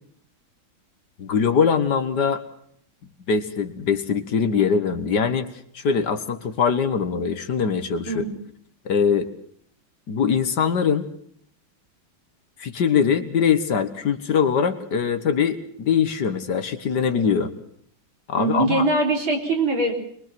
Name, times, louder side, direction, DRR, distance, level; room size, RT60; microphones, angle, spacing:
voice 1, 1.2-2.4 3.3-8.2 8.9-9.3 10.1-11.1 12.6-17.5 18.3-18.8, left 6 dB, 60° left, 10 dB, 1.8 m, -22 dB
voice 2, 8.1-8.4 18.4-19.9, right 2 dB, 80° right, 1 dB, 4.7 m, -22 dB
23.0 x 22.5 x 6.0 m, 0.65 s
omnidirectional pair, 2.2 m